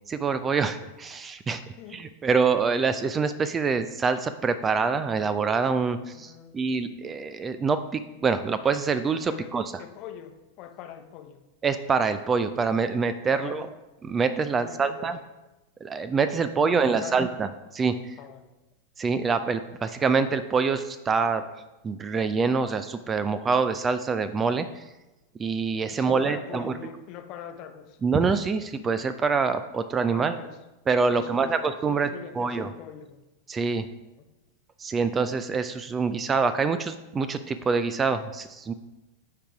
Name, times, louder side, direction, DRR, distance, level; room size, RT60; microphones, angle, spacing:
voice 1, 0.1-1.6 1.9-9.7 11.6-13.7 14.0-15.2 15.8-18.1 19.0-21.4 21.8-24.8 25.4-26.7 28.0-30.4 30.9-32.7 33.5-33.9 34.8-38.7, right 5 dB, 20° right, 12 dB, 0.4 m, -25 dB
voice 2, 1.6-2.0 6.0-6.6 9.2-11.4 13.3-13.7 14.6-15.1 16.5-17.3 18.2-18.5 25.9-28.0 30.1-30.6 31.1-31.5 31.9-33.2 34.1-34.2, left 10 dB, 40° left, 6 dB, 0.8 m, -43 dB
9.9 x 3.9 x 4.7 m, 1.0 s
figure-of-eight pair, 90°, 0 cm